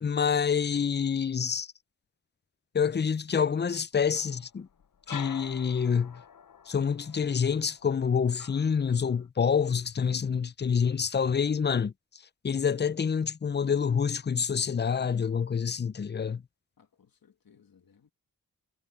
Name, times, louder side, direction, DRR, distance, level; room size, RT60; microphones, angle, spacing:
voice 1, 0.0-1.7 2.7-4.7 5.1-6.2 6.7-11.9 12.4-16.4, left 6 dB, 30° left, 0.4 m, -27 dB
sound 1, 4.1-9.3, left 7 dB, 75° left, 0.8 m, -47 dB
voice 2, 16.8-18.1, left 7 dB, 90° left, 1.7 m, -62 dB
wide cardioid pair, 75°, 34 cm